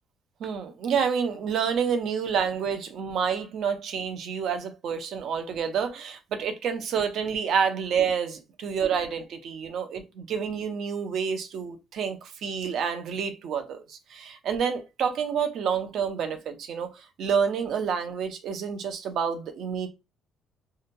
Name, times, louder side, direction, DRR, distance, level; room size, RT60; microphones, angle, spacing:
voice 1, 0.4-19.9, right 7 dB, 55° right, 0.5 m, -28 dB
2.8 x 2.2 x 2.5 m
cardioid pair, 155°, 0 cm